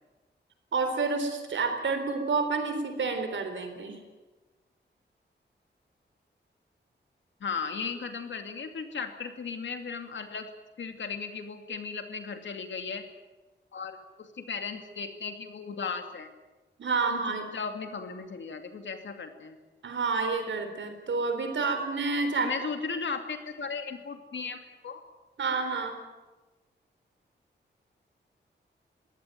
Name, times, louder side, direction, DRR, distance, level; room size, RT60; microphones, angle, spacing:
voice 1, 0.7-4.0 16.8-17.4 19.8-22.5 25.4-26.0, right 4 dB, 85° right, 7 dB, 3.9 m, -29 dB
voice 2, 7.4-10.5 10.8-13.1 13.7-16.3 17.1-17.2 17.5-19.6 22.4-25.0, left 5 dB, 75° left, 6 dB, 2.6 m, -36 dB
22.5 x 17.0 x 9.2 m, 1.2 s
wide cardioid pair, 135°, 19 cm